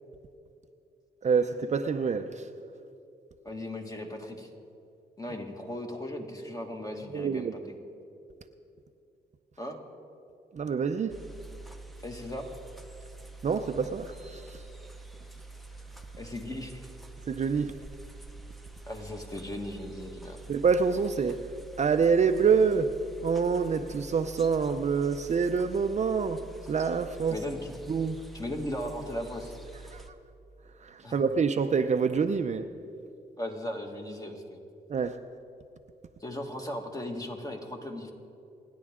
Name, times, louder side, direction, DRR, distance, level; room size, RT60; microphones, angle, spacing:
voice 1, 1.2-2.4 7.1-7.5 10.5-11.2 13.4-14.6 17.3-17.7 20.5-21.4 21.8-22.9 23.2-27.4 27.9-28.2 29.9-30.0 30.8-32.7 34.9-35.2, right 5 dB, 40° right, 0.6 m, -26 dB
voice 2, 3.4-4.5 5.2-7.8 9.6-9.8 12.0-12.5 16.2-16.9 18.9-20.4 27.3-27.7 28.3-29.5 31.0-31.2 33.4-34.6 36.2-38.1, left 1 dB, 20° left, 1.8 m, -37 dB
sound 1, 11.1-30.1, right 3 dB, ahead, 0.8 m, -47 dB
28.5 x 10.5 x 3.7 m
cardioid pair, 105°, 18 cm